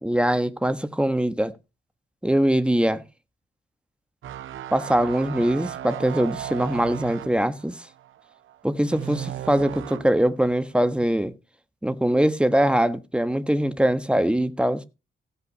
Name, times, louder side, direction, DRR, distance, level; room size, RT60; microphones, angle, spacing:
voice 1, 0.0-1.5 2.2-3.0 4.7-7.9 8.6-11.3 11.8-14.8, right 1 dB, 5° right, 1.3 m, -22 dB
sound 1, 4.2-10.2 10.6-10.9, right 11 dB, 85° right, 0.7 m, -36 dB
15.5 x 5.7 x 5.4 m
cardioid pair, 60°, 20 cm